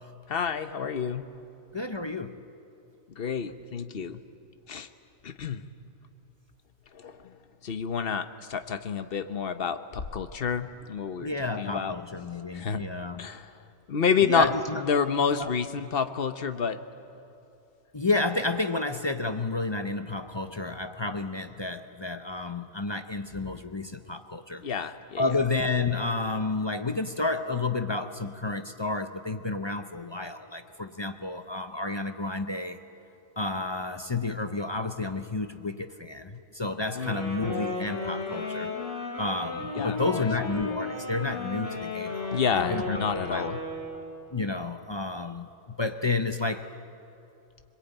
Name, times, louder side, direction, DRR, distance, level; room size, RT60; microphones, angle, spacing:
voice 1, 0.3-1.3 3.2-4.2 4.7-4.9 5.2-5.6 6.9-7.3 7.6-12.0 12.5-12.8 13.2-13.5 13.9-16.8 24.6-25.3 36.9-37.2 39.7-40.3 42.3-43.6, left 6 dB, 45° left, 10 dB, 1.0 m, -29 dB
voice 2, 1.7-2.4 11.2-13.3 14.2-14.8 15.3-15.5 17.9-24.6 25.2-32.8 33.4-38.7 39.2-43.0 43.3-43.5 44.3-46.7, left 3 dB, 30° left, 8 dB, 0.5 m, -31 dB
Wind instrument woodwind instrument, 37.0-44.1, left 3 dB, 25° right, 7.9 m, -34 dB
25.0 x 21.5 x 9.0 m, 2.7 s
omnidirectional pair, 1.4 m